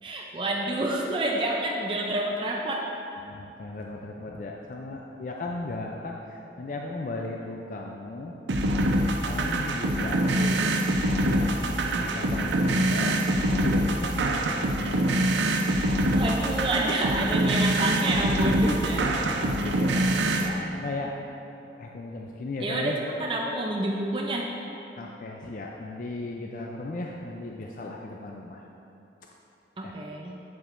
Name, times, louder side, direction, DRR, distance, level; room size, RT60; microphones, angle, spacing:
voice 1, 0.0-2.8 11.9-12.2 15.8-19.2 22.6-24.5 29.8-30.4, right 1 dB, 25° right, -1 dB, 0.4 m, -28 dB
voice 2, 3.2-8.4 9.2-10.7 11.1-15.1 19.1-21.2 21.7-23.0 25.0-28.6 29.8-29.9, left 2 dB, 45° left, 0 dB, 0.4 m, -36 dB
sound 1, 8.5-20.5, right 1 dB, 80° right, 0.5 m, -25 dB
8.3 x 7.1 x 2.6 m, 2.8 s
head